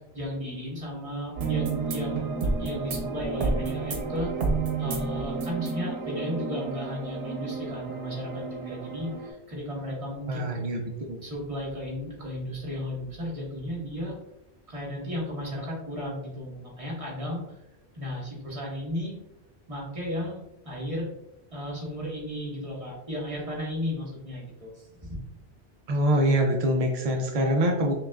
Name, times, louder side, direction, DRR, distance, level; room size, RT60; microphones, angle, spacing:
voice 1, 0.0-2.3 2.6-4.3 4.8-10.4 11.2-14.2 14.7-17.6 17.9-19.2 19.7-21.1 21.5-25.2, equal, 30° right, -4 dB, 1.3 m, -34 dB
sound 1, 1.3-9.3, right 4 dB, 90° right, 1.0 m, -31 dB
voice 2, 10.3-10.8 11.1-11.2 25.9-27.9, right 1 dB, 60° right, 2 dB, 0.4 m, -24 dB
5.7 x 2.4 x 2.3 m, 0.86 s
omnidirectional pair, 1.2 m